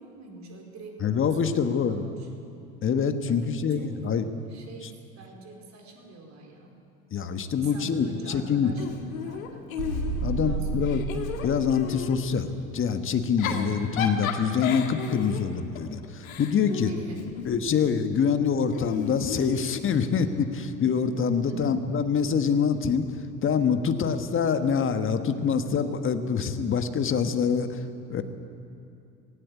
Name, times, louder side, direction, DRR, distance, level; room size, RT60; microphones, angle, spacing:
voice 1, 0.0-2.3 3.3-6.8 7.5-8.9 9.1-9.7 10.2-11.1 16.8-17.3 21.4-21.8, right 2 dB, 40° right, 2 dB, 4.6 m, -45 dB
voice 2, 1.0-2.1 2.8-4.2 7.1-8.7 10.2-11.0 11.4-16.9 17.4-28.2, left 6 dB, 30° left, 8 dB, 1.5 m, -25 dB
Giggle / Chuckle chortle, 8.8-10.4 10.8-12.2 13.2-17.7 18.7-20.1, left 8 dB, 70° left, 2.0 m, -34 dB
sound 1, 9.8-12.5, right 3 dB, 70° right, 5.5 m, -32 dB
17.5 x 17.0 x 8.5 m, 2.6 s
figure-of-eight pair, 75°, 42 cm